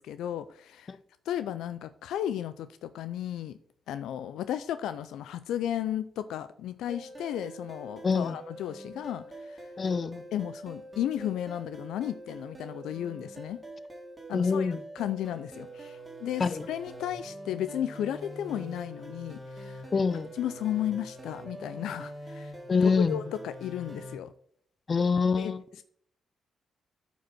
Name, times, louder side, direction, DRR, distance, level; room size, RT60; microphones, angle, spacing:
voice 1, 0.1-1.0 1.3-3.6 3.9-9.7 10.3-13.6 14.3-19.9 20.3-22.5 22.8-24.3 25.4-25.8, left 11 dB, 80° left, 0.3 m, -34 dB
sound 1, 6.9-24.2, right 1 dB, 20° right, 2.2 m, -44 dB
voice 2, 8.0-8.3 9.8-10.2 14.3-14.8 16.4-16.6 19.9-20.3 22.7-23.2 24.9-25.6, left 5 dB, 45° left, 0.6 m, -25 dB
9.0 x 5.2 x 4.2 m
supercardioid pair, 55°, 0 cm